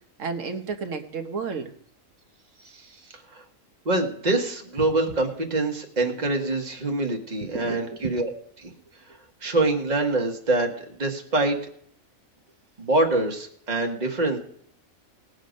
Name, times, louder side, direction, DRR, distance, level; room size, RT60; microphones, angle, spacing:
voice 1, 0.2-1.7 7.5-8.1, right 5 dB, 65° right, 6 dB, 1.4 m, -32 dB
voice 2, 2.6-3.4 3.8-8.3 8.6-8.7 9.4-11.6 12.8-14.4, right 2 dB, 30° right, 3 dB, 1.5 m, -25 dB
19.0 x 6.6 x 5.2 m, 0.63 s
omnidirectional pair, 1.4 m